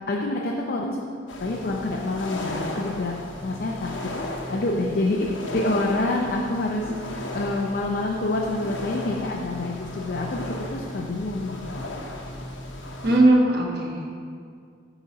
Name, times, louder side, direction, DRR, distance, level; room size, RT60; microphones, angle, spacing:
voice 1, 0.1-1.1 1.4-3.1 3.4-4.2 4.5-11.9, left 2 dB, 55° left, -1 dB, 0.6 m, -27 dB
sound 1, 1.3-13.2, left 1 dB, 85° left, 1.0 m, -35 dB
voice 2, 13.0-14.0, right 1 dB, 60° right, -1 dB, 1.3 m, -19 dB
8.6 x 4.0 x 5.2 m, 2.2 s
head